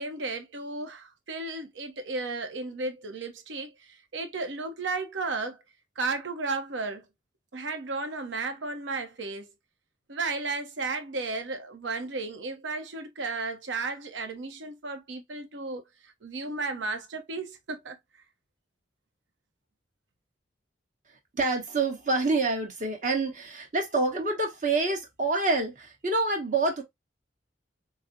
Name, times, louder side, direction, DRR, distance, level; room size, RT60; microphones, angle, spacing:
voice 1, 0.0-5.6 6.0-7.1 7.5-9.5 10.1-18.0, right 3 dB, 80° right, 0.7 m, -34 dB
voice 2, 21.3-26.8, right 3 dB, 45° right, 1.0 m, -27 dB
4.7 x 2.0 x 2.5 m
head